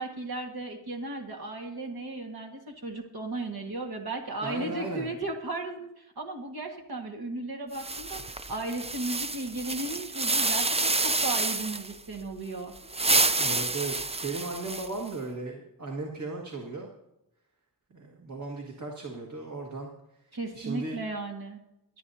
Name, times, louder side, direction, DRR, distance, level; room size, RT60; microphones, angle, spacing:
voice 1, 0.0-12.7 20.3-21.6, right 2 dB, 60° right, 1 dB, 1.8 m, -35 dB
voice 2, 4.4-5.1 12.8-13.0 13.3-16.9 17.9-19.9 20.3-21.0, right 3 dB, 45° right, 0 dB, 1.8 m, -36 dB
sound 1, 7.7-11.9 12.8-15.1, right 3 dB, 15° right, 0.5 m, -28 dB
25.5 x 9.0 x 2.8 m, 0.88 s
wide cardioid pair, 105°, 41 cm